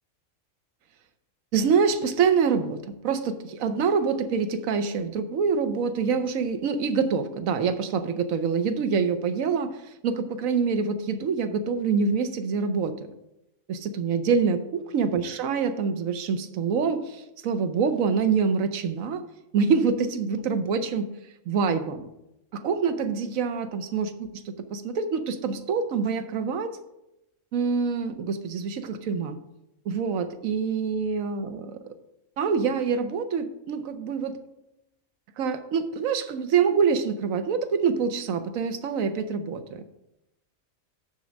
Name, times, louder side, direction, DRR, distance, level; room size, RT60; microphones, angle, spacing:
voice 1, 1.5-9.8 10.0-13.0 13.7-14.7 14.9-19.2 19.5-21.1 21.5-22.1 22.5-26.7 27.5-29.4 29.9-31.9 32.4-34.4 35.4-39.8, right 5 dB, 80° right, 9 dB, 1.2 m, -26 dB
6.8 x 6.3 x 6.1 m, 0.91 s
omnidirectional pair, 1.4 m